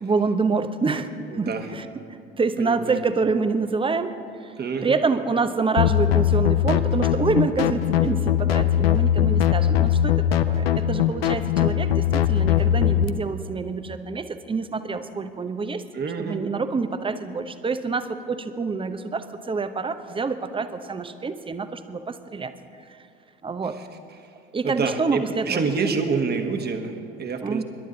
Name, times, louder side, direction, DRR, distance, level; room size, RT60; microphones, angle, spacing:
voice 1, 0.0-1.8 2.4-4.1 4.4-4.5 4.8-15.8 16.2-22.5 23.4-23.8 24.5-26.0 27.4-27.6, right 4 dB, 15° right, 10 dB, 0.8 m, -27 dB
voice 2, 1.3-1.7 2.6-3.0 4.6-5.0 15.9-16.4 23.6-23.9 24.2-24.3 24.6-27.6, right 5 dB, 35° right, 6 dB, 1.5 m, -27 dB
sound 1, 5.8-13.1, left 10 dB, 80° left, 0.6 m, -21 dB
25.5 x 12.0 x 3.9 m, 2.5 s
figure-of-eight pair, 60°, 30 cm